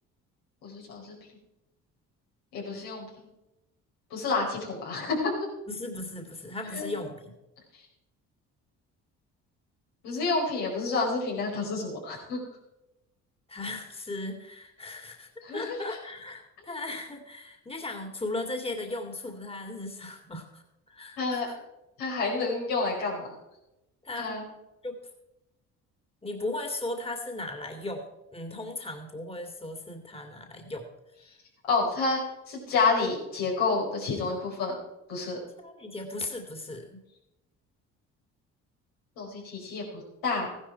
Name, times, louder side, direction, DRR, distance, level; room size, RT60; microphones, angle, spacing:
voice 1, 0.6-1.1 2.5-3.3 4.1-5.4 6.7-6.9 7.7-7.8 10.0-12.4 15.4-15.7 21.2-21.5 22.0-23.3 24.2-24.5 31.7-34.8 35.1-35.4 39.2-40.6, left 3 dB, 80° left, -2 dB, 4.9 m, -29 dB
voice 2, 5.7-7.3 13.5-21.6 24.0-24.3 24.8-25.0 26.2-28.1 28.3-30.9 35.6-37.0, left 2 dB, 15° left, 4 dB, 2.4 m, -37 dB
14.5 x 11.0 x 4.5 m, 0.93 s
supercardioid pair, 65°, 35 cm